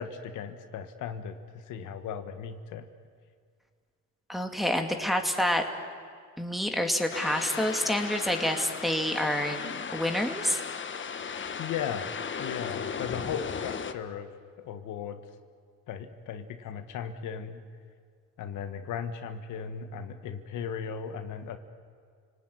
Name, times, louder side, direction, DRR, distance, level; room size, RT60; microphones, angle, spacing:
voice 1, 0.0-2.8 11.6-12.1 12.4-14.3 14.6-15.2 15.9-17.6 18.4-21.6, left 7 dB, 85° left, 8 dB, 1.5 m, -37 dB
voice 2, 4.3-5.6 6.4-9.6 9.9-10.6, equal, ahead, 3 dB, 2.5 m, -28 dB
sound 1, 7.1-13.9, left 6 dB, 40° left, 1.3 m, -36 dB
30.0 x 19.0 x 9.5 m, 2.1 s
cardioid pair, 90°, 30 cm